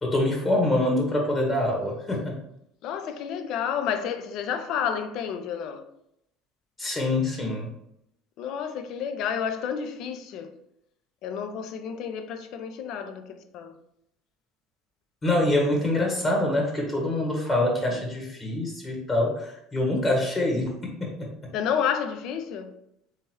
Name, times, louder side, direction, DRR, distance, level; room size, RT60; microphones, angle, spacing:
voice 1, 0.0-2.4 6.8-7.7 15.2-21.5, left 1 dB, 25° left, 1.1 m, -25 dB
voice 2, 2.8-5.8 8.4-10.5 11.2-13.7 17.9-18.0 21.5-22.7, left 7 dB, 55° left, 0.5 m, -30 dB
3.5 x 2.9 x 3.0 m
hypercardioid pair, 70°, 0 cm